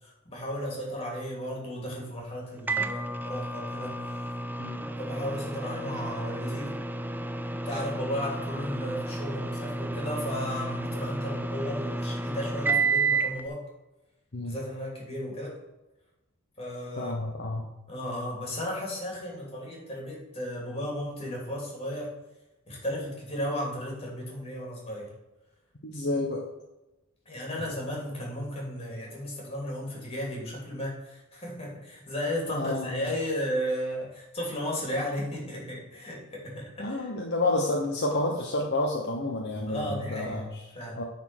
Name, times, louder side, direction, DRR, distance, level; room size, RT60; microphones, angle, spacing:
voice 1, 0.0-4.0 5.0-6.7 7.6-13.6 14.4-15.6 16.6-17.1 17.9-22.1 22.7-25.1 27.3-37.0 39.7-40.4 40.7-41.0, equal, 30° left, -2 dB, 2.7 m, -34 dB
Microwave oven, 2.7-13.4, right 3 dB, 10° right, 0.3 m, -31 dB
voice 2, 17.0-17.6 25.8-26.4 32.5-33.2 36.8-40.6 41.0-41.1, left 2 dB, 55° left, 0 dB, 1.0 m, -30 dB
9.6 x 4.3 x 6.1 m, 1.0 s
head